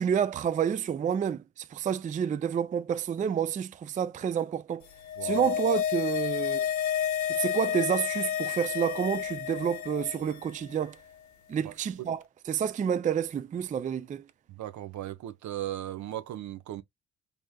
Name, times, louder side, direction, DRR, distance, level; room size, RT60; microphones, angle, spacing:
voice 1, 0.0-4.9 5.2-6.7 7.3-11.0 11.5-14.2, right 8 dB, 25° right, 0.3 m, -29 dB
sound 1, 4.9-10.4 10.7-10.8, left 9 dB, 70° left, 0.6 m, -30 dB
voice 2, 5.2-5.5 11.6-11.7 12.0-12.1 14.5-16.8, right 13 dB, 70° right, 0.6 m, -37 dB
3.4 x 2.8 x 2.2 m
cardioid pair, 90°, 30 cm